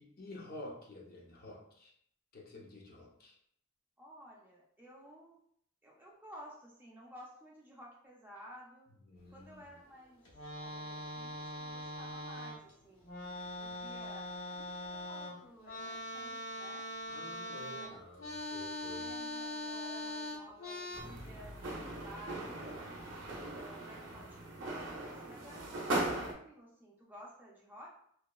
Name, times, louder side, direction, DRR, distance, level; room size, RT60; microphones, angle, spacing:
voice 1, 0.0-1.9 2.3-3.3 9.1-9.6 13.4-13.8 17.1-19.1, left 1 dB, 45° left, -2 dB, 0.5 m, -50 dB
voice 2, 4.0-5.4 5.8-8.9 9.3-10.2 10.6-13.1 13.6-16.9 17.5-18.0 18.9-22.8 23.5-27.9, equal, 10° right, -4 dB, 0.4 m, -54 dB
sound 1, 10.2-12.7 13.0-21.0, left 1 dB, 85° left, 0.7 m, -42 dB
sound 2, 20.9-26.3, right 1 dB, 65° right, 0.5 m, -39 dB
2.9 x 2.1 x 2.2 m, 0.66 s
head